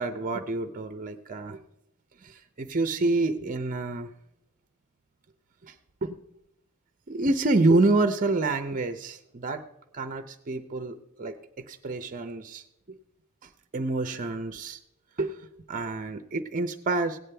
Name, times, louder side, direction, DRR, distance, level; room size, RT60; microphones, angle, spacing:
voice 1, 0.0-1.6 2.2-4.1 5.6-5.7 6.0-6.2 7.1-9.7 9.9-13.0 13.4-14.8 15.2-15.4 15.7-17.2, right 2 dB, 35° right, 10 dB, 0.6 m, -28 dB
16.5 x 9.2 x 3.3 m, 0.80 s
head